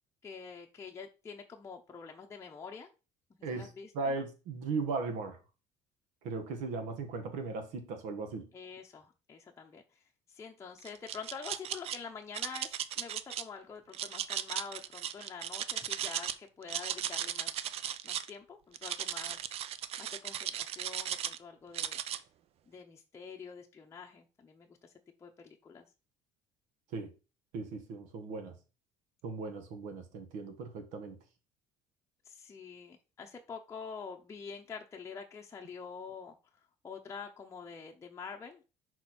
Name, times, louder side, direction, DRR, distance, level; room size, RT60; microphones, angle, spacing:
voice 1, 0.2-2.9 3.5-4.1 8.5-10.0 10.3-17.5 18.0-19.4 20.0-22.0 22.7-24.9 25.2-25.9 32.2-36.4 36.8-38.6, left 5 dB, 20° left, 0.8 m, -46 dB
voice 2, 3.4-5.4 6.2-8.5 26.9-27.1 27.5-28.6 29.2-31.2, right 4 dB, 85° right, 1.5 m, -37 dB
sound 1, 10.8-12.0 12.3-13.4 13.9-16.3 16.6-18.3 18.7-21.4 21.7-22.2, right 10 dB, 55° right, 0.5 m, -36 dB
6.1 x 4.4 x 4.3 m
cardioid pair, 120°, 13 cm